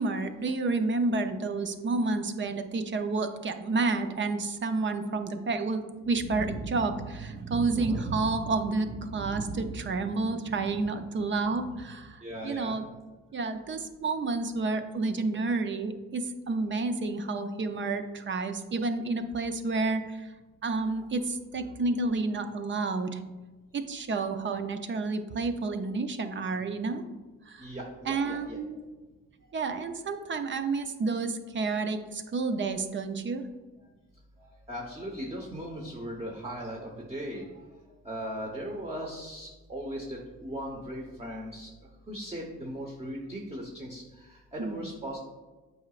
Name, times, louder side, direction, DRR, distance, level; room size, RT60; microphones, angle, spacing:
voice 1, 0.0-12.8 13.3-20.3 20.6-23.2 23.7-27.0 27.5-27.7 28.1-28.8 29.5-33.5 44.6-44.8, right 3 dB, 40° right, 7 dB, 0.6 m, -30 dB
voice 2, 7.7-8.1 12.2-12.8 27.6-28.6 34.7-37.4 38.0-41.7 42.1-45.2, equal, 20° right, -1 dB, 1.1 m, -38 dB
7.9 x 4.9 x 2.4 m, 1.2 s
cardioid pair, 90°, 30 cm